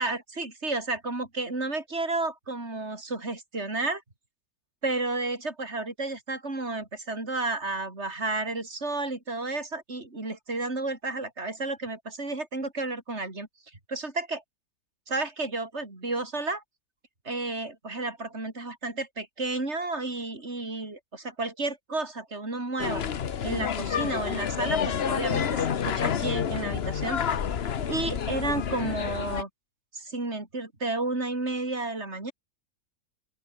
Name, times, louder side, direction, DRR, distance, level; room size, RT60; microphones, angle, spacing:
voice 1, 0.0-4.0 4.8-13.5 13.9-14.4 15.1-16.6 17.3-23.0 23.4-27.2 27.9-29.5 29.9-32.3, right 2 dB, 45° right, 5.3 m, -32 dB
sound 1, 22.8-29.4, left 8 dB, 50° left, 1.1 m, -29 dB
open air
omnidirectional pair, 1.5 m